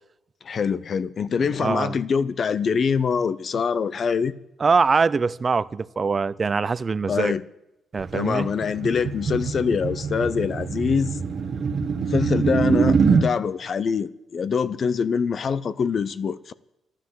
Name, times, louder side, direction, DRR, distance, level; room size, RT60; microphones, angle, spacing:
voice 1, 0.4-4.3 7.1-7.4 8.1-11.2 12.0-16.5, left 6 dB, 50° left, 0.7 m, -24 dB
voice 2, 1.6-1.9 4.6-7.3 7.9-8.5, right 4 dB, 35° right, 0.5 m, -23 dB
sound 1, 8.0-13.3, right 5 dB, 50° right, 1.4 m, -24 dB
13.0 x 11.5 x 7.6 m
cardioid pair, 90°, 0 cm